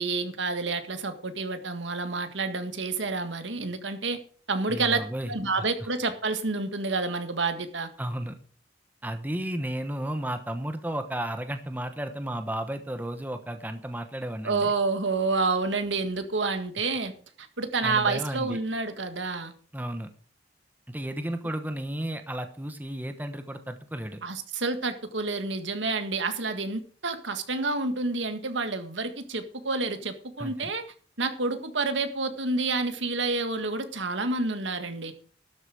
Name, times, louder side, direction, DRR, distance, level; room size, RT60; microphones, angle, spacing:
voice 1, 0.0-4.2 4.5-5.0 5.3-7.9 14.4-17.1 17.4-19.5 24.2-30.8 31.2-35.1, right 3 dB, 85° right, 8 dB, 1.7 m, -29 dB
voice 2, 4.7-5.3 5.6-5.7 8.0-8.4 9.0-14.7 17.8-18.6 19.7-20.1 20.9-24.2 30.4-30.7, right 1 dB, 10° right, 8 dB, 1.1 m, -33 dB
12.5 x 8.1 x 4.9 m, 0.43 s
head